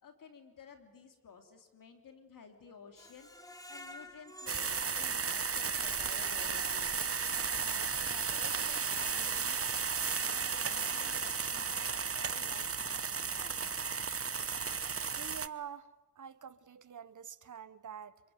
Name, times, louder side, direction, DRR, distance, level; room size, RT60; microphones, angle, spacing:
voice 1, 0.0-3.3 3.7-6.8 7.5-9.6 10.1-13.8, left 6 dB, 85° left, 5 dB, 3.2 m, -53 dB
Screech, 2.9-5.9 6.4-6.5 6.9-7.0, left 1 dB, 10° left, 3.9 m, -51 dB
sound 1, 4.5-15.5, right 6 dB, 45° right, 1.0 m, -34 dB
voice 2, 15.2-15.9 16.2-18.2, right 8 dB, 70° right, 15 dB, 1.2 m, -46 dB
26.5 x 23.5 x 9.4 m, 1.1 s
cardioid pair, 45°, 32 cm